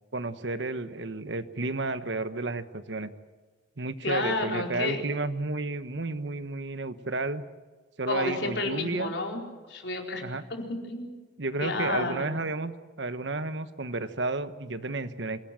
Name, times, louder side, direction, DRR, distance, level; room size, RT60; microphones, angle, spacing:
voice 1, 0.1-3.1 3.8-7.4 8.0-9.1 10.2-10.4 11.4-12.7 13.0-15.4, right 3 dB, 80° right, 11 dB, 1.2 m, -32 dB
voice 2, 4.0-5.0 8.1-10.2 10.5-11.1 11.6-12.3, left 2 dB, 80° left, 1 dB, 4.5 m, -31 dB
26.5 x 18.0 x 7.7 m, 1.4 s
head